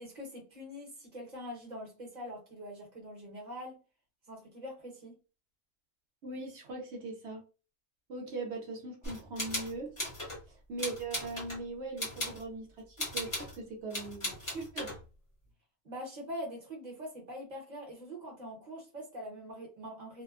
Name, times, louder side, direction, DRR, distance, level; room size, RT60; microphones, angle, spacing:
voice 1, 0.0-3.8 4.3-5.1 15.8-20.2, equal, 35° right, -1 dB, 0.9 m, -43 dB
voice 2, 6.2-7.4 8.1-9.9 10.5-15.0, right 3 dB, 65° right, 1 dB, 0.7 m, -40 dB
sound 1, 9.0-10.4 10.8-11.6 12.0-12.4 13.0-13.6 13.9-15.0, left 1 dB, 25° left, 0.9 m, -37 dB
2.7 x 2.1 x 2.3 m, 0.33 s
omnidirectional pair, 1.6 m